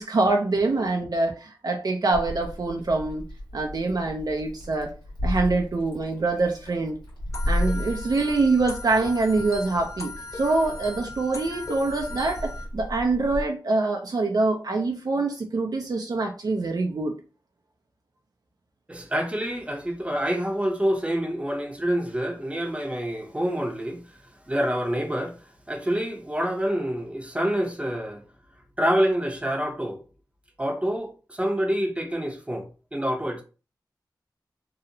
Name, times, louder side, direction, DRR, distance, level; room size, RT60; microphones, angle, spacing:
voice 1, 0.0-3.2 3.5-4.9 5.2-7.0 7.5-17.1, right 3 dB, 55° right, 0.4 m, -25 dB
Meow, 2.1-13.4, left 1 dB, 80° left, 1.3 m, -34 dB
sound 1, 7.3-12.6, left 2 dB, 40° left, 0.6 m, -38 dB
voice 2, 18.9-24.0 24.5-25.4 25.7-28.2 28.8-30.0 30.6-33.4, equal, 15° right, 0.7 m, -27 dB
2.8 x 2.0 x 2.6 m
cardioid pair, 55°, 8 cm